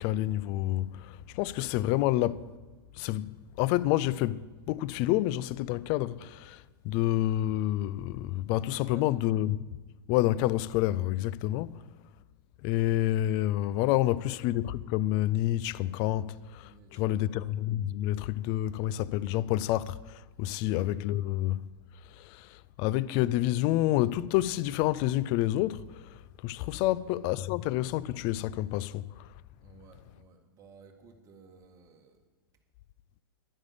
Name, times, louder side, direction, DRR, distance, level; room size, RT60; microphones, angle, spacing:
voice 1, 0.0-2.5 3.0-9.6 10.1-11.8 12.6-21.6 22.2-25.8 26.4-29.1, left 14 dB, 35° left, 0.4 m, -28 dB
voice 2, 16.6-17.2 20.5-20.6 26.7-26.9 29.6-32.2, right 5 dB, 25° right, 1.7 m, -55 dB
11.0 x 9.6 x 6.8 m
figure-of-eight pair, 105°, 12 cm